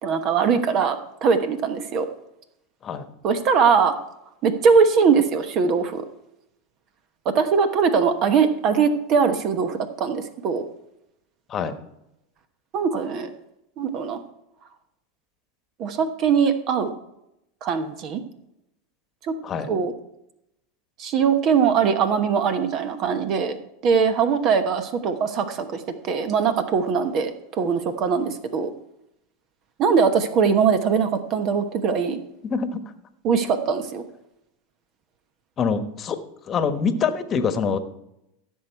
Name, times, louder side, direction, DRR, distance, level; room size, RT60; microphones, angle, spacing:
voice 1, 0.0-2.1 3.2-3.9 4.4-6.0 7.2-10.6 12.7-13.3 13.8-14.2 15.8-16.9 17.6-18.2 19.3-19.4 19.7-19.9 21.0-23.6 23.8-28.7 29.8-32.2 33.2-34.0, right 6 dB, 45° right, 9 dB, 1.0 m, -21 dB
voice 2, 35.6-36.2 36.5-37.8, left 6 dB, 30° left, 10 dB, 1.2 m, -24 dB
15.0 x 6.4 x 4.6 m, 0.83 s
hypercardioid pair, 105°, 0 cm